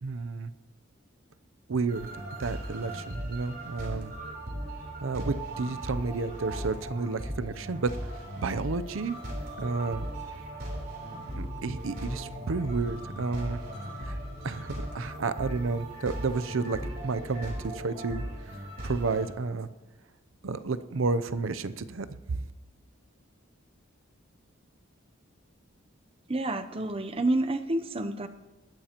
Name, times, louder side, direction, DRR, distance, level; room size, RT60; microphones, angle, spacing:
voice 1, 0.0-0.5 1.7-2.1 2.4-4.1 5.0-9.2 9.6-10.1 11.4-13.6 14.0-14.2 14.4-18.2 18.5-19.7 20.4-22.4, right 4 dB, 80° right, 12 dB, 0.6 m, -31 dB
sound 1, 1.9-19.3, right 1 dB, 50° right, 3.6 m, -38 dB
voice 2, 26.3-28.3, right 2 dB, 30° right, 9 dB, 0.7 m, -29 dB
21.0 x 13.5 x 3.0 m, 1.2 s
head